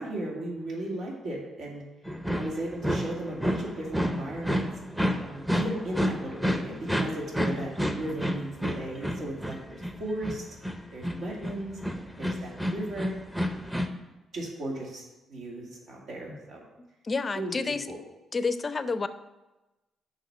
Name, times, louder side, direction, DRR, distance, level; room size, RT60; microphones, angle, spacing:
voice 1, 0.0-1.8 2.3-4.6 5.2-10.4 10.9-11.8 12.2-13.1 14.3-15.0 15.3-16.6 17.4-18.0, right 1 dB, 70° right, -3 dB, 2.3 m, -36 dB
sound 1, 2.0-13.9, equal, 5° right, 0.7 m, -30 dB
voice 2, 17.0-17.9 18.3-19.1, left 4 dB, 30° left, 11 dB, 0.5 m, -29 dB
6.4 x 5.3 x 6.6 m, 1.1 s
cardioid pair, 90°, 0 cm